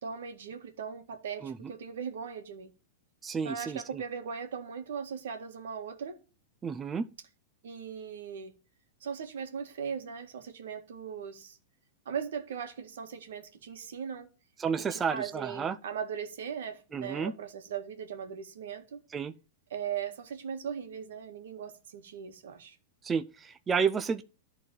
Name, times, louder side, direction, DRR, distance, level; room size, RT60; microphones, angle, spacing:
voice 1, 0.0-2.7 3.4-6.2 7.6-8.5 9.0-11.6 12.1-14.3 14.8-19.0 19.7-22.8, right 7 dB, 85° right, 1.8 m, -39 dB
voice 2, 3.2-4.0 6.6-7.1 14.6-15.8 16.9-17.3 19.1-19.3 23.0-24.2, right 6 dB, 15° right, 0.5 m, -31 dB
11.5 x 4.0 x 7.1 m
supercardioid pair, 145°, 0 cm